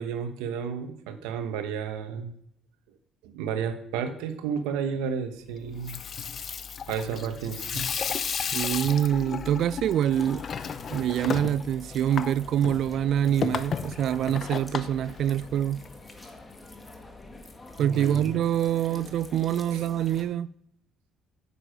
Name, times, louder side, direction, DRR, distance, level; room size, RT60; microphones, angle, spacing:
voice 1, 0.0-2.3 3.2-6.0 6.9-7.8 17.8-18.3 19.7-19.8, right 7 dB, 90° right, 1.0 m, -32 dB
Water tap faucet / Sink (filling or washing), 5.7-15.9, left 7 dB, 50° left, 0.6 m, -34 dB
voice 2, 8.5-10.4 10.9-15.8 17.8-20.5, right 10 dB, 65° right, 0.3 m, -25 dB
sound 1, 10.1-20.2, left 2 dB, 20° left, 1.6 m, -45 dB
8.7 x 6.9 x 5.1 m
supercardioid pair, 85°, 0 cm